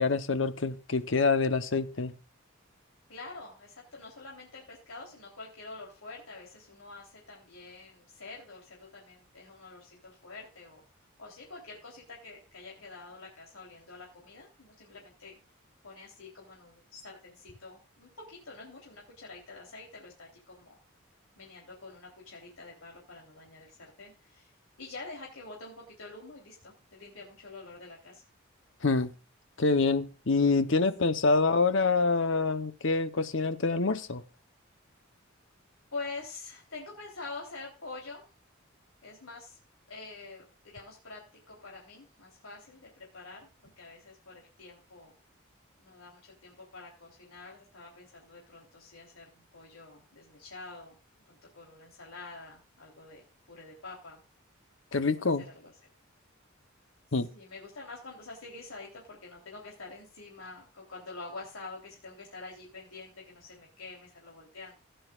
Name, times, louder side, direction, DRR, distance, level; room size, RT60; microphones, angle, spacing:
voice 1, 0.0-2.1 28.8-29.1 29.6-34.2 54.9-55.4 57.1-57.3, left 3 dB, 65° left, 0.9 m, -26 dB
voice 2, 3.1-10.8 11.2-15.3 15.8-20.8 21.4-28.2 31.1-31.3 35.9-38.2 39.0-39.6 39.9-45.1 45.8-51.0 51.3-53.2 53.5-54.2 55.2-55.7 57.3-64.7, left 3 dB, 90° left, 3.6 m, -46 dB
16.5 x 10.5 x 2.5 m
head